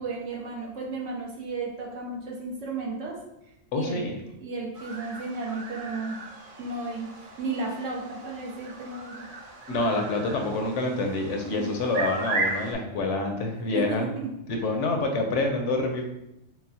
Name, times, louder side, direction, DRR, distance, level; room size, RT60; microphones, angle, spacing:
voice 1, 0.0-3.2 3.7-6.2 6.6-7.1 7.4-9.3 11.5-11.7 13.7-14.3, right 3 dB, 75° right, 0 dB, 1.1 m, -34 dB
voice 2, 3.7-4.1 9.7-14.1 14.5-16.0, left 2 dB, 70° left, 3 dB, 0.9 m, -27 dB
sound 1, 4.7-12.7, right 3 dB, 50° right, 0.8 m, -36 dB
6.0 x 2.0 x 2.7 m, 0.85 s
omnidirectional pair, 1.3 m